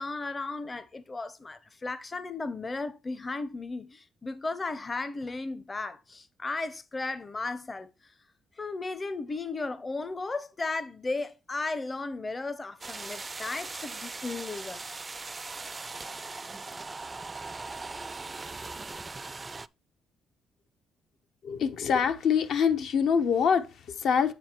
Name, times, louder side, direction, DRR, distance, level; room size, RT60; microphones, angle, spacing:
voice 1, 0.0-7.9 8.6-14.8, left 3 dB, 25° left, 0.7 m, -35 dB
sound 1, 12.8-19.7, right 3 dB, 25° right, 0.3 m, -39 dB
voice 2, 21.4-24.3, left 7 dB, 70° left, 0.9 m, -25 dB
7.9 x 4.5 x 4.4 m
cardioid pair, 90°, 0 cm